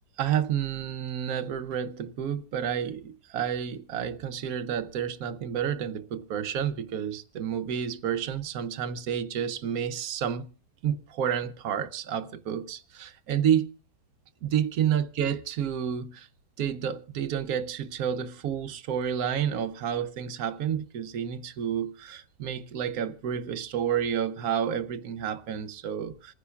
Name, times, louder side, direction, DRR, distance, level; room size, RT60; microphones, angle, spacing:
voice 1, 0.2-10.5 10.8-13.7 14.4-16.3 16.6-26.3, right 8 dB, 65° right, 1.1 m, -30 dB
27.5 x 9.8 x 2.3 m
omnidirectional pair, 1.8 m